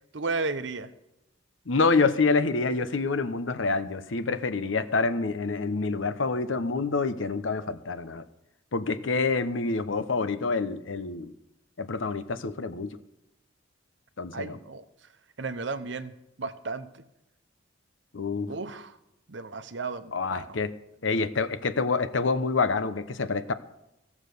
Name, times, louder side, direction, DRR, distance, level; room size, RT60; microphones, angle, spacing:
voice 1, 0.1-0.9 14.3-14.8 15.4-17.0 18.5-19.0 19.3-20.6, right 3 dB, 65° right, 11 dB, 0.9 m, -34 dB
voice 2, 1.7-8.2 8.7-11.3 11.8-13.0 14.2-14.6 18.1-18.5 20.1-20.7 21.0-23.5, left 4 dB, 85° left, 12 dB, 0.8 m, -27 dB
15.5 x 7.3 x 6.6 m, 0.89 s
head